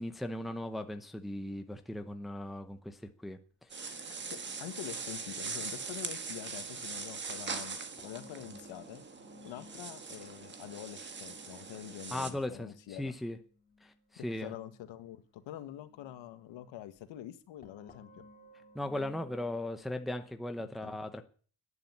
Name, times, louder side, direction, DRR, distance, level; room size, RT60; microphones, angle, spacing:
voice 1, 0.0-3.9 8.5-8.6 12.1-13.4 13.8-14.5 18.7-21.3, left 1 dB, ahead, 7 dB, 0.8 m, -38 dB
sound 1, 3.7-12.3, right 5 dB, 25° right, 1.6 m, -41 dB
voice 2, 4.1-9.0 9.4-13.1 14.2-18.3 20.6-21.0, left 12 dB, 70° left, 10 dB, 1.8 m, -46 dB
sound 2, 8.0-19.9, left 1 dB, 20° left, 3.2 m, -59 dB
12.0 x 10.5 x 9.7 m, 0.43 s
cardioid pair, 180°, 46 cm